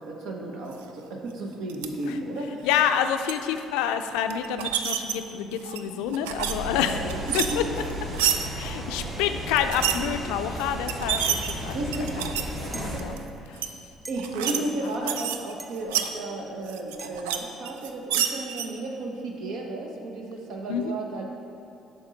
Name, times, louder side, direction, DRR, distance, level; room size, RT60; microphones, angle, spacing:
voice 1, 0.0-2.7 7.0-7.7 11.7-12.3 14.1-21.2, right 2 dB, 70° right, 1 dB, 0.9 m, -33 dB
sound 1, 1.7-1.9 2.8-3.3 4.3-5.1 5.6-6.5 6.8-8.4 9.6-10.0 10.6-10.7 10.9-12.5 12.9-13.2 13.6-13.7 14.1-14.6 14.9-16.1 16.7-17.4 17.7-18.7, right 9 dB, 85° right, 0.3 m, -28 dB
voice 2, 2.6-7.6 8.6-11.8 12.2-13.2 13.5-13.8 14.5-14.6 15.0-15.1 20.7-21.0, left 9 dB, 80° left, 8 dB, 0.3 m, -28 dB
sound 2, 6.4-13.0, right 1 dB, 45° right, 1.7 m, -34 dB
sound 3, 12.7-12.9 14.0-14.2 15.6-15.8 17.0-17.1, right 1 dB, 20° right, 0.6 m, -40 dB
7.2 x 5.3 x 3.9 m, 2.7 s
hypercardioid pair, 65°, 0 cm